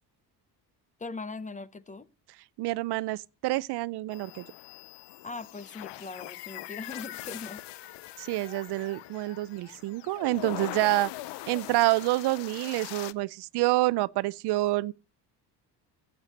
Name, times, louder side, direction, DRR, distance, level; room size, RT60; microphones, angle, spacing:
voice 1, 1.0-2.1 5.2-7.9, left 3 dB, 20° left, 0.6 m, -40 dB
voice 2, 2.6-4.4 8.2-11.1 11.5-14.9, right 19 dB, 70° right, 0.5 m, -27 dB
sound 1, 4.1-13.1, left 16 dB, 90° left, 0.6 m, -42 dB
14.5 x 8.2 x 4.1 m
cardioid pair, 105°, 41 cm